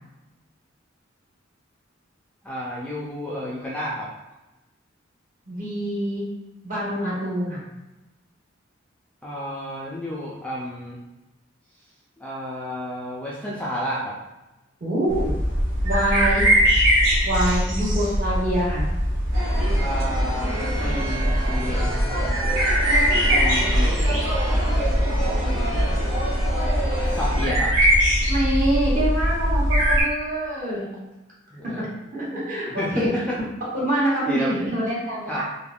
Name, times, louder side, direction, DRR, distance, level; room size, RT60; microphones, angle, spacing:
voice 1, 2.4-4.1 9.2-11.0 12.2-14.2 18.0-18.1 19.8-22.3 23.3-24.0 24.5-25.8 27.0-27.7 28.0-28.2 30.7-30.9 31.5-31.9 32.7-33.4 34.3-34.5 35.3-35.4, equal, 5° left, -6 dB, 0.3 m, -32 dB
voice 2, 5.5-6.2 6.6-7.6 14.8-15.4 15.8-16.5 17.2-18.8 28.3-30.9 32.1-33.1 33.7-35.4, right 1 dB, 45° right, -7 dB, 1.1 m, -25 dB
sound 1, 15.1-30.0, equal, 65° right, 0.7 m, -22 dB
sound 2, 19.3-27.5, right 1 dB, 90° right, 1.2 m, -30 dB
3.3 x 2.1 x 2.3 m, 1.0 s
head